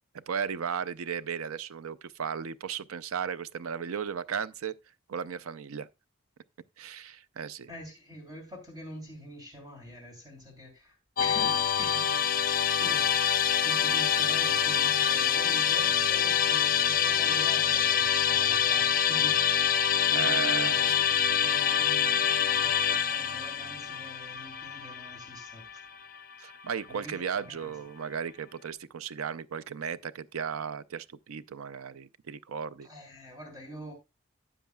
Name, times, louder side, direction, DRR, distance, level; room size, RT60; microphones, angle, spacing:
voice 1, 0.1-4.7 5.1-5.9 6.8-7.7 20.1-21.0 26.4-32.9, right 7 dB, 85° right, 0.5 m, -35 dB
voice 2, 7.7-12.0 12.8-25.8 26.9-27.7 32.8-33.9, equal, 20° right, 3.0 m, -45 dB
Musical instrument, 11.2-26.3, left 8 dB, 45° left, 0.6 m, -26 dB
12.5 x 8.4 x 2.3 m
head